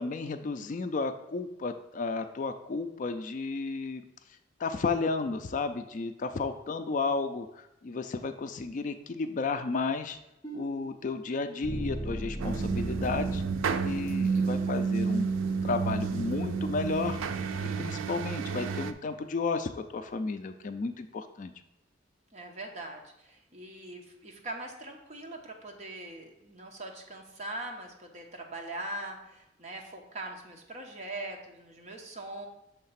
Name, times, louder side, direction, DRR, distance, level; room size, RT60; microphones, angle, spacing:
voice 1, 0.0-4.0 4.6-10.2 10.5-13.4 13.8-15.3 15.6-17.2 17.6-21.5, left 4 dB, 40° left, 8 dB, 0.3 m, -33 dB
sound 1, 10.4-14.5, right 1 dB, 20° left, 0.7 m, -38 dB
sound 2, 12.4-18.9, right 5 dB, 90° right, 0.4 m, -30 dB
voice 2, 22.3-32.5, right 1 dB, 35° right, 1 dB, 0.9 m, -41 dB
6.4 x 3.4 x 5.6 m, 0.91 s
head